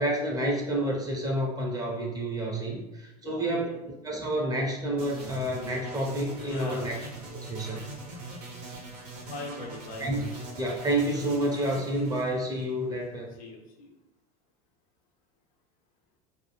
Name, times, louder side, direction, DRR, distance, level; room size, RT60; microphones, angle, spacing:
voice 1, 0.0-3.7 4.0-7.0 7.3-7.8 10.0-10.3 10.6-13.3, right 1 dB, 20° right, -1 dB, 0.6 m, -29 dB
voice 2, 3.2-3.8 6.4-6.9 9.3-10.1 13.4-14.0, left 3 dB, 45° left, 0 dB, 0.6 m, -41 dB
sound 1, 5.0-13.1, right 3 dB, 85° right, 0.7 m, -41 dB
2.1 x 2.0 x 3.0 m, 0.95 s
hypercardioid pair, 85°, 20 cm